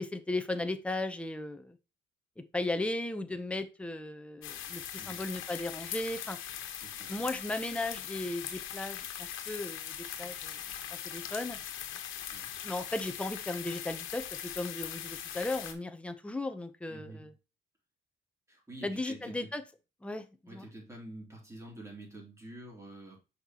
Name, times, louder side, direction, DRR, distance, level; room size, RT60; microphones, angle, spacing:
voice 1, 0.0-1.8 2.5-6.4 7.1-10.6 10.9-11.6 12.6-17.3 18.8-19.6 20.0-20.7, left 2 dB, 5° left, 0.8 m, -36 dB
sound 1, 4.4-15.7, left 10 dB, 85° left, 1.3 m, -41 dB
voice 2, 6.8-7.2 12.3-12.6 16.9-17.3 18.5-19.6 20.5-23.2, right 1 dB, 15° right, 3.2 m, -48 dB
6.3 x 5.7 x 3.0 m
cardioid pair, 140°, 20 cm